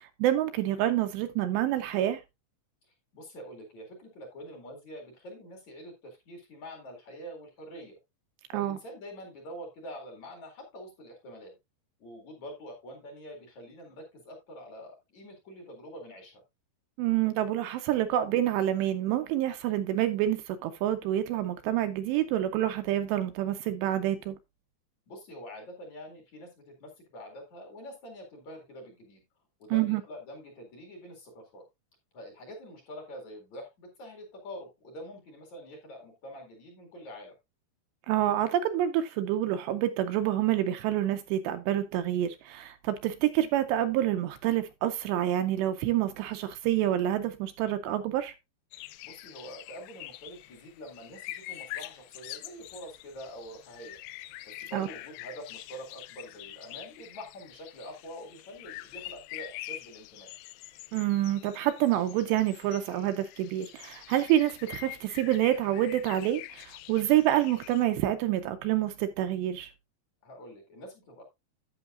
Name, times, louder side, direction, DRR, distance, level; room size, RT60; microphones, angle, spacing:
voice 1, 0.0-2.2 8.5-8.8 17.0-24.4 29.7-30.0 38.1-48.3 54.7-54.9 60.9-69.7, right 12 dB, 80° right, 2.6 m, -27 dB
voice 2, 2.8-7.9 8.5-11.5 12.0-16.4 25.1-29.2 29.6-31.6 32.1-37.3 49.0-54.0 54.4-60.3 70.2-71.2, equal, 45° left, 2.9 m, -45 dB
sound 1, 48.7-67.9, left 16 dB, 80° left, 2.5 m, -45 dB
11.0 x 8.5 x 2.5 m
omnidirectional pair, 5.3 m